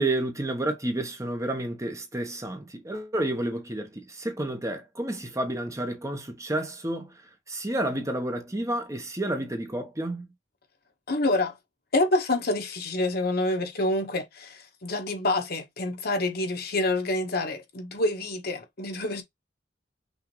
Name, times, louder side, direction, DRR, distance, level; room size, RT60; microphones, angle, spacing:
voice 1, 0.0-7.1 7.5-10.3, right 1 dB, 15° right, 1.1 m, -30 dB
voice 2, 11.1-11.6 11.9-19.2, left 2 dB, 60° left, 1.4 m, -27 dB
6.1 x 2.7 x 3.2 m
head